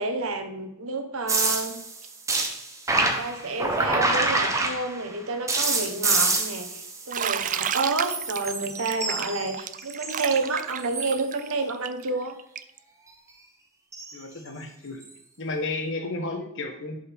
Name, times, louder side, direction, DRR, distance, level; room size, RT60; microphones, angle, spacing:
voice 1, 0.0-1.8 2.9-12.4, right 3 dB, 65° right, 6 dB, 1.2 m, -29 dB
sound 1, 1.3-5.1 5.5-7.7 8.0-10.4 10.8-11.2 13.9-14.1 15.0-15.1, right 3 dB, 15° right, 1.0 m, -27 dB
Bathtub (filling or washing), 7.1-12.8, right 9 dB, 35° right, 0.4 m, -31 dB
voice 2, 14.1-15.0 15.4-17.0, left 2 dB, 60° left, 5 dB, 1.4 m, -32 dB
10.5 x 5.5 x 3.6 m, 0.81 s
head